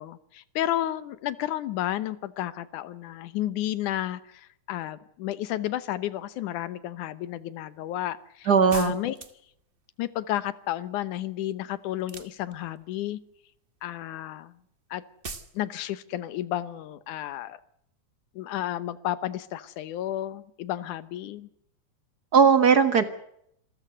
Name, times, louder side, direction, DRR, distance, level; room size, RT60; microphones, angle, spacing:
voice 1, 0.0-8.5 8.7-9.2 10.0-13.2 13.8-14.5 14.9-15.0 15.5-17.6 18.4-21.5, left 13 dB, 85° left, 16 dB, 2.5 m, -32 dB
voice 2, 8.5-8.9 22.3-23.0, right 6 dB, 50° right, 12 dB, 1.3 m, -18 dB
sound 1, 8.7-9.6 12.0-12.8 15.2-15.6, right 4 dB, 70° right, 0.5 m, -40 dB
27.0 x 15.0 x 7.8 m, 0.73 s
omnidirectional pair, 3.5 m